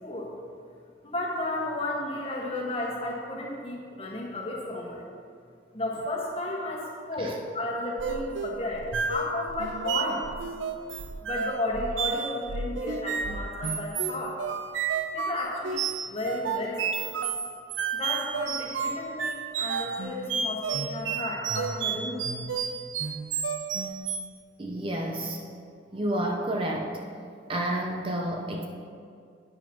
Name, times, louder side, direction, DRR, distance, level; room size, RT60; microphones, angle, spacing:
voice 1, 1.0-5.0 5.7-10.2 11.2-14.4 15.1-17.1 17.9-22.2, left 1 dB, 30° left, -3 dB, 1.5 m, -33 dB
sound 1, 8.0-24.4, right 6 dB, 90° right, 0.6 m, -32 dB
voice 2, 24.6-25.4 25.9-27.0 27.5-28.6, right 1 dB, 30° right, 1 dB, 0.6 m, -30 dB
11.0 x 9.0 x 2.9 m, 2.3 s
head